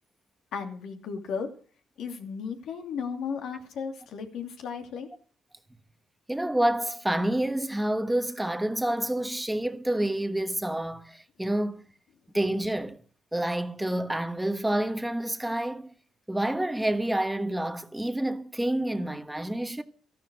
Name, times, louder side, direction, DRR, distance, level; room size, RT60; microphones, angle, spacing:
voice 1, 0.5-1.5 2.0-5.1, left 6 dB, 75° left, 2.8 m, -35 dB
voice 2, 6.3-11.8 12.3-13.0 13.3-15.9 16.3-19.8, right 1 dB, 5° right, 1.2 m, -28 dB
13.5 x 12.5 x 6.2 m
cardioid pair, 90°, 0 cm